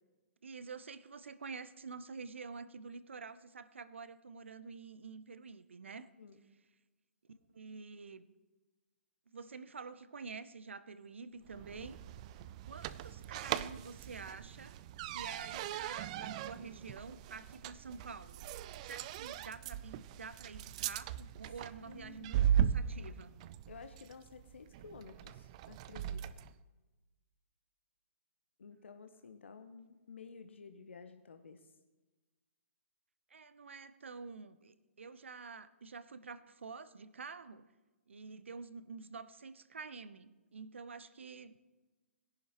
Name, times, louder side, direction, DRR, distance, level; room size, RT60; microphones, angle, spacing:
voice 1, 0.4-6.1 7.5-8.3 9.3-12.0 12.6-14.7 15.1-18.5 18.9-23.3 33.3-37.7 38.1-41.6, right 4 dB, 65° right, 14 dB, 0.8 m, -48 dB
sound 1, 11.5-26.5, right 9 dB, 30° right, 0.4 m, -38 dB
voice 2, 21.8-22.4 23.7-26.5 28.6-31.7, left 5 dB, 60° left, 8 dB, 0.9 m, -53 dB
20.5 x 11.0 x 3.1 m, 1.2 s
figure-of-eight pair, 120°, 7 cm